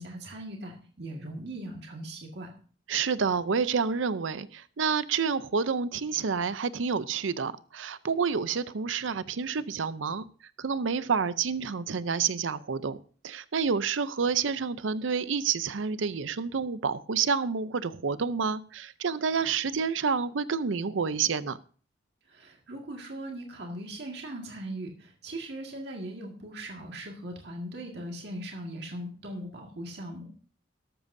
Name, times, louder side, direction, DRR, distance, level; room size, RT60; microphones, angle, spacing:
voice 1, 0.0-2.5 22.3-30.4, right 1 dB, 60° right, 1 dB, 1.9 m, -39 dB
voice 2, 2.9-10.2 10.6-13.0 13.2-21.6, right 5 dB, 80° right, 15 dB, 0.6 m, -29 dB
13.5 x 12.5 x 2.7 m, 0.41 s
head